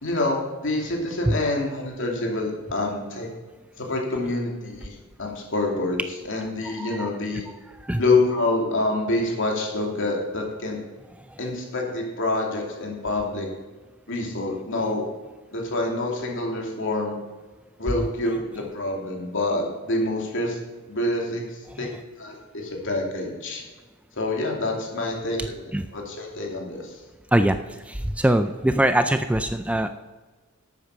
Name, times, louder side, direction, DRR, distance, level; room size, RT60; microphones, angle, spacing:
voice 1, 0.0-3.3 3.8-6.0 6.2-7.4 8.0-10.8 11.4-13.5 14.1-15.0 15.5-17.2 17.8-20.6 20.9-21.4 21.8-21.9 22.2-23.6 24.2-26.9, left 2 dB, 60° left, 0 dB, 2.8 m, -27 dB
voice 2, 6.3-7.1 7.8-8.0 21.7-21.9 25.7-25.9 27.3-27.6 27.9-29.9, right 1 dB, 5° right, 9 dB, 0.4 m, -23 dB
12.0 x 8.2 x 6.1 m, 1.3 s
head